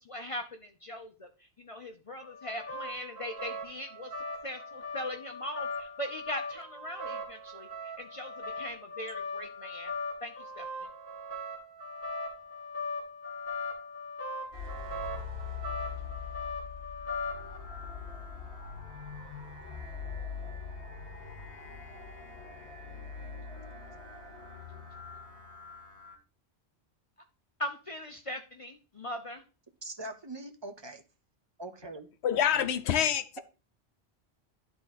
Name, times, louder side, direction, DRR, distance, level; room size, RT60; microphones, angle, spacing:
voice 1, 0.1-1.3 1.6-4.1 4.4-7.7 8.0-9.9 10.2-10.6 27.6-29.4, equal, 35° left, 0.7 m, -40 dB
sound 1, 2.2-17.6, left 2 dB, 15° left, 2.6 m, -39 dB
sound 2, 14.5-26.2, left 5 dB, 65° left, 2.1 m, -42 dB
voice 2, 29.8-31.0 31.6-32.1, right 2 dB, 30° right, 0.7 m, -42 dB
voice 3, 32.2-33.4, left 9 dB, 80° left, 0.9 m, -27 dB
11.0 x 3.8 x 4.1 m
omnidirectional pair, 1.1 m